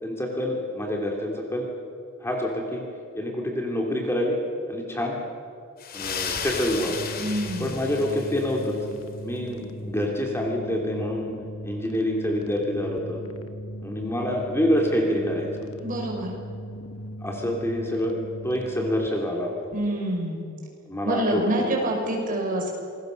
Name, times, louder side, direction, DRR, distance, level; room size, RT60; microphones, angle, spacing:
voice 1, 0.0-1.7 2.2-2.8 3.1-4.4 4.7-5.2 5.9-7.1 7.6-8.7 9.2-11.3 11.6-13.2 13.8-15.7 17.2-18.1 18.4-19.7 20.9-21.7, left 1 dB, 10° left, 0 dB, 3.1 m, -27 dB
sound 1, 5.8-8.8, left 6 dB, 45° left, 2.5 m, -34 dB
sound 2, 6.9-19.1, equal, 75° left, 1.6 m, -38 dB
voice 2, 7.2-7.8 15.8-16.3 19.7-20.5 21.0-22.7, right 1 dB, 40° right, 0 dB, 5.9 m, -27 dB
28.0 x 21.0 x 6.7 m, 2.4 s
head